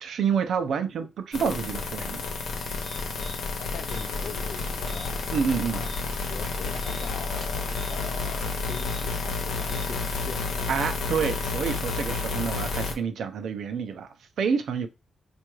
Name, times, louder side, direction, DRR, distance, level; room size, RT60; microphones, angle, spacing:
voice 1, 0.0-2.2 5.3-5.8 10.7-14.1 14.4-14.9, right 6 dB, 75° right, 0.7 m, -28 dB
sound 1, 1.3-12.9, left 4 dB, 85° left, 0.9 m, -30 dB
sound 2, 2.5-10.4, left 1 dB, 30° left, 1.2 m, -49 dB
voice 2, 3.6-5.2 5.7-5.9 6.3-10.7, left 6 dB, 60° left, 0.5 m, -41 dB
sound 3, 3.9-10.5, right 2 dB, 40° right, 1.2 m, -48 dB
4.6 x 2.6 x 3.1 m
wide cardioid pair, 175°, 0 cm